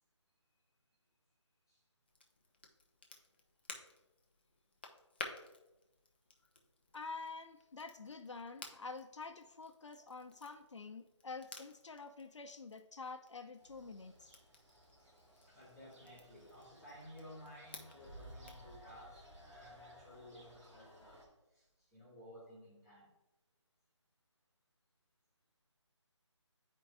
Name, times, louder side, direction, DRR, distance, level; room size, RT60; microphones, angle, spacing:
Crackle, 2.1-18.7, left 3 dB, 20° left, 0.4 m, -55 dB
voice 1, 6.9-14.3, left 4 dB, 70° left, 6 dB, 0.6 m, -48 dB
sound 1, 13.6-21.3, left 1 dB, 70° right, 2.3 m, -61 dB
voice 2, 15.5-21.2 21.5-23.1, equal, 5° right, -8 dB, 2.4 m, -56 dB
Boom, 18.0-21.0, right 1 dB, 25° right, 1.8 m, -57 dB
9.9 x 4.5 x 2.6 m, 0.98 s
figure-of-eight pair, 160°, 16 cm